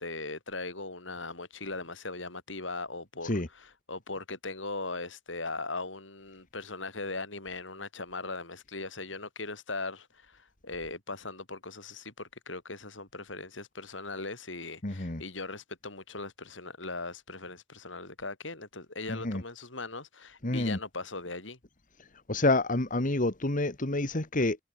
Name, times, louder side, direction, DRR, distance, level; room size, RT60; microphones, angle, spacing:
voice 1, 0.0-21.6, left 3 dB, 85° left, 6.9 m, -39 dB
voice 2, 14.8-15.2 19.2-19.4 20.4-20.8 22.3-24.6, left 2 dB, 45° left, 1.8 m, -28 dB
head